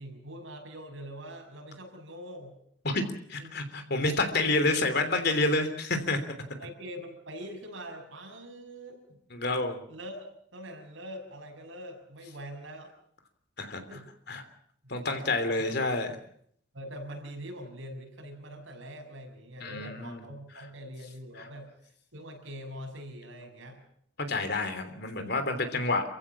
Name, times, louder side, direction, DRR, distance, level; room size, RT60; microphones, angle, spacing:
voice 1, 0.0-2.6 3.4-3.5 3.8-4.0 6.6-9.0 9.9-12.9 13.9-14.1 14.8-15.9 16.7-21.7 22.1-23.8, equal, 85° right, 2 dB, 6.7 m, -43 dB
voice 2, 3.3-6.2 9.3-9.8 13.6-13.8 14.3-14.4 14.9-16.2 19.6-20.2 21.4-21.5 24.3-26.0, left 2 dB, 55° left, 8 dB, 3.2 m, -28 dB
28.0 x 16.0 x 7.4 m, 0.68 s
head